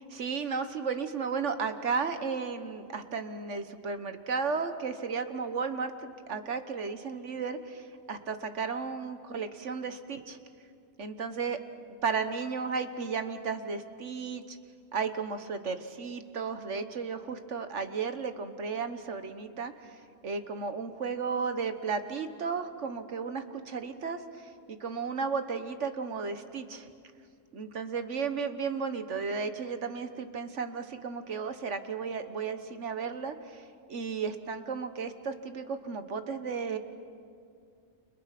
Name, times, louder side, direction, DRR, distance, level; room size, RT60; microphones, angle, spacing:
voice 1, 0.1-10.4 11.0-11.6 12.0-14.6 14.9-19.7 20.2-24.2 24.7-26.9 27.5-33.4 33.9-36.8, right 5 dB, 65° right, 9 dB, 1.6 m, -34 dB
30.0 x 28.5 x 6.0 m, 2.3 s
omnidirectional pair, 1.3 m